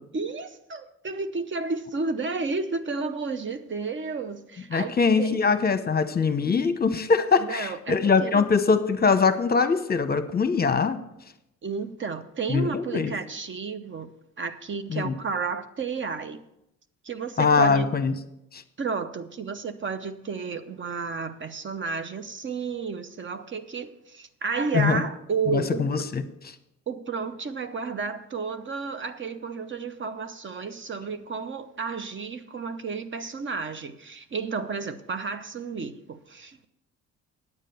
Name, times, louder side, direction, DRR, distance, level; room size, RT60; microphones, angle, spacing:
voice 1, 0.1-5.4 7.4-8.4 11.6-14.1 14.4-16.4 17.0-17.9 18.8-25.9 26.9-36.7, right 4 dB, 40° right, 0.8 m, -32 dB
voice 2, 4.7-11.0 12.5-13.1 14.9-15.1 17.4-18.1 18.5-18.6 24.7-25.0 25.5-26.2, left 5 dB, 30° left, 0.9 m, -22 dB
9.7 x 7.4 x 6.9 m
cardioid pair, 90°, 30 cm